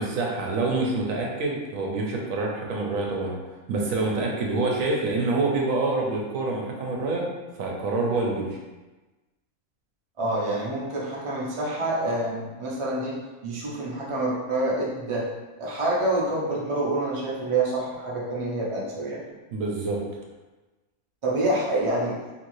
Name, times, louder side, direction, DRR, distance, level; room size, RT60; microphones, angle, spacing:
voice 1, 0.0-3.4 3.7-7.3 7.6-8.6 19.5-20.0, right 3 dB, 75° right, -1 dB, 1.0 m, -26 dB
voice 2, 10.2-13.2 13.4-15.3 15.6-19.2 21.2-22.2, right 2 dB, 45° right, -5 dB, 0.4 m, -27 dB
3.1 x 2.8 x 2.6 m, 1.2 s
omnidirectional pair, 1.5 m